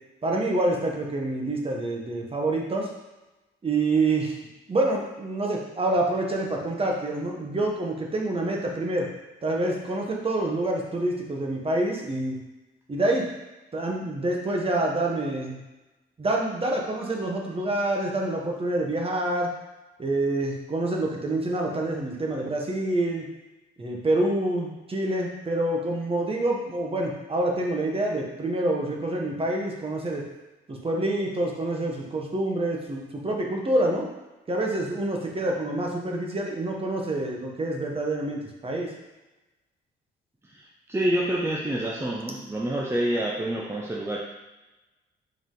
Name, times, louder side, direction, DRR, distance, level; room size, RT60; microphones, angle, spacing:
voice 1, 0.2-2.9 3.6-4.4 4.7-9.1 9.4-12.4 12.9-13.3 13.7-15.6 16.2-19.5 20.0-23.2 23.8-30.2 30.7-34.1 34.5-38.9, right 2 dB, 30° right, 0 dB, 1.4 m, -27 dB
voice 2, 40.4-44.2, right 1 dB, 15° right, -3 dB, 0.8 m, -27 dB
5.2 x 5.1 x 3.9 m, 1.1 s
cardioid pair, 90°, 20 cm